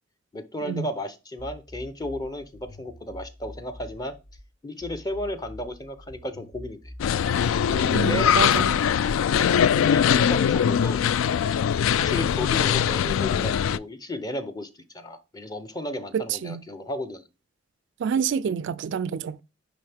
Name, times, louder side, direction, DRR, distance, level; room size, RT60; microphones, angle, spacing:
voice 1, 0.3-4.1 4.6-6.9 7.7-8.3 9.5-11.1 11.9-14.7 14.9-17.2, left 1 dB, 20° left, 0.7 m, -34 dB
sound 1, 1.4-4.4 4.8-7.8, left 1 dB, 45° left, 4.3 m, -45 dB
sound 2, 7.0-13.8, left 8 dB, 75° left, 0.3 m, -22 dB
voice 2, 7.9-8.8 16.1-16.6 18.0-19.4, right 7 dB, 60° right, 0.3 m, -28 dB
10.0 x 3.5 x 3.5 m
head